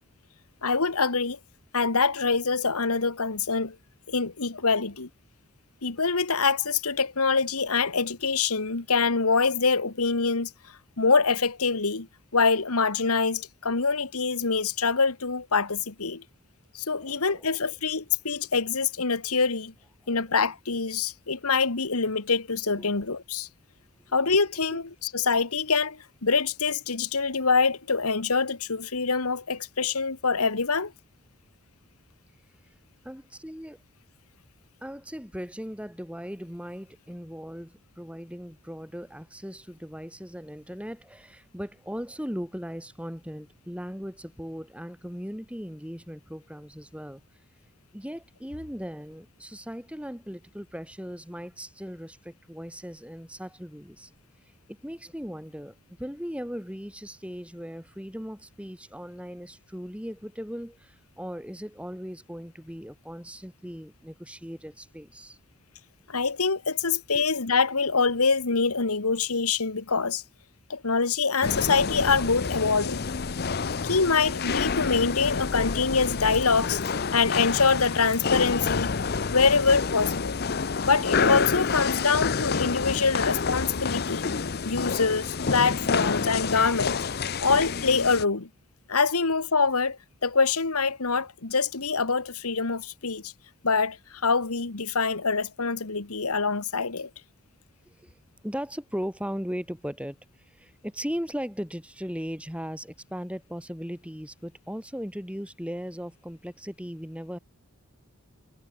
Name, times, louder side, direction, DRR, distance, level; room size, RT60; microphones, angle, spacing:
voice 1, 0.6-1.4 1.7-3.8 4.1-5.1 5.8-10.5 11.0-12.1 12.3-16.2 16.7-19.7 20.1-23.5 24.1-30.9 66.1-70.2 70.7-73.0 73.8-76.8 77.1-78.9 79.3-80.4 80.9-84.3 84.6-87.0 87.4-88.5 88.9-93.3 93.6-97.1, left 4 dB, 85° left, 1.7 m, -25 dB
voice 2, 17.0-17.4 22.8-22.9 24.7-24.8 33.0-33.8 34.8-47.2 47.9-54.1 54.7-65.4 67.1-67.2 97.8-98.1 98.4-107.4, equal, 5° right, 5.1 m, -38 dB
sound 1, 71.4-88.2, left 5 dB, 45° left, 0.6 m, -28 dB
head